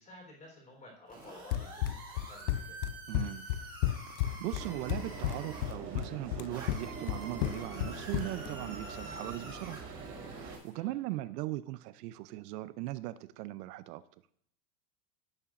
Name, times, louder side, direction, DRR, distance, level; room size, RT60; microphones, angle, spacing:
voice 1, 0.0-1.9 2.3-2.8 10.7-10.9, left 1 dB, 15° left, 0 dB, 3.7 m, -53 dB
sound 1, 1.1-5.7 6.5-10.7, right 2 dB, 10° right, 3.7 m, -48 dB
Run, 1.5-8.5, left 14 dB, 85° left, 0.6 m, -33 dB
voice 2, 3.1-3.4 4.2-9.8 10.3-14.0, right 16 dB, 75° right, 15 dB, 0.6 m, -39 dB
sound 2, 4.5-10.6, right 4 dB, 25° right, 4.3 m, -44 dB
17.0 x 7.0 x 2.5 m, 0.71 s
supercardioid pair, 175°, 48 cm